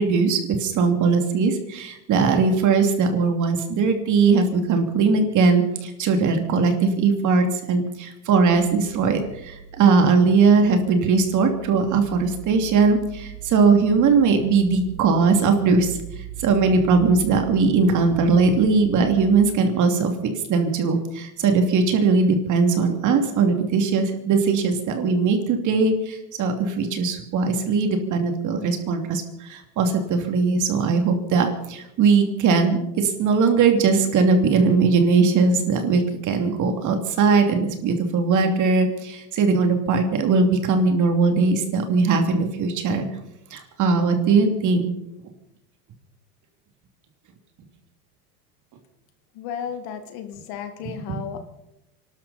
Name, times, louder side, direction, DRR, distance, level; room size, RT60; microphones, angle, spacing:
voice 1, 0.0-16.0 16.4-20.1 20.5-43.0 43.5-44.9, right 4 dB, 40° right, 5 dB, 2.8 m, -20 dB
sound 1, 8.5-19.4, right 8 dB, 15° left, 5.6 m, -39 dB
voice 2, 49.4-51.4, left 8 dB, 50° left, 7 dB, 2.0 m, -33 dB
25.5 x 12.5 x 4.3 m, 0.88 s
supercardioid pair, 125°, 46 cm